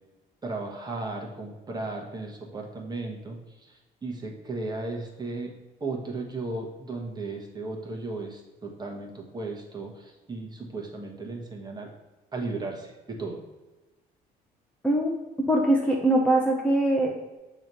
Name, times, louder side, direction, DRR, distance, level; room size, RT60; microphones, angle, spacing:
voice 1, 0.4-5.5 5.8-11.9 12.3-13.4, right 3 dB, 25° right, 0 dB, 1.4 m, -35 dB
voice 2, 15.5-17.4, right 1 dB, 5° left, -1 dB, 0.9 m, -22 dB
6.1 x 3.2 x 5.4 m, 1.1 s
cardioid pair, 110°, 17 cm